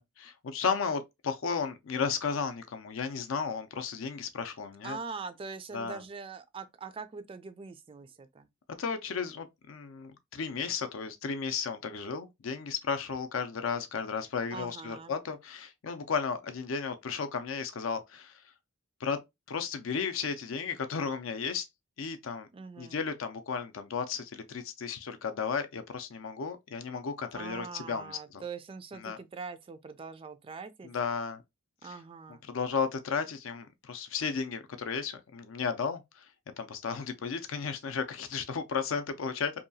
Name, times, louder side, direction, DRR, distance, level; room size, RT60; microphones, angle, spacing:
voice 1, 0.0-5.0 5.7-6.0 8.8-18.3 19.0-19.2 19.5-21.7 22.0-22.5 22.8-28.4 29.0-29.2 30.8-31.4 31.8-31.9 32.5-36.3 36.6-39.6, left 5 dB, 75° left, 0.5 m, -34 dB
voice 2, 4.8-8.5 14.5-15.2 22.5-23.0 27.3-30.9 31.8-32.4, right 5 dB, 25° right, 0.3 m, -42 dB
2.7 x 2.3 x 2.6 m
head